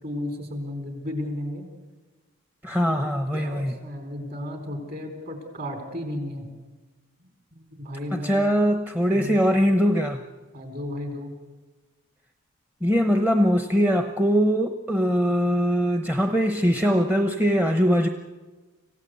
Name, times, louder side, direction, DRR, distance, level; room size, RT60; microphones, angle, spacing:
voice 1, 0.0-1.7 2.8-3.0 3.3-6.5 7.5-8.5 9.1-9.4 10.5-11.3, left 1 dB, 45° right, 5 dB, 4.3 m, -34 dB
voice 2, 2.6-3.7 8.1-10.2 12.8-18.1, equal, 10° right, 6 dB, 0.8 m, -22 dB
25.5 x 16.0 x 8.2 m, 1.3 s
head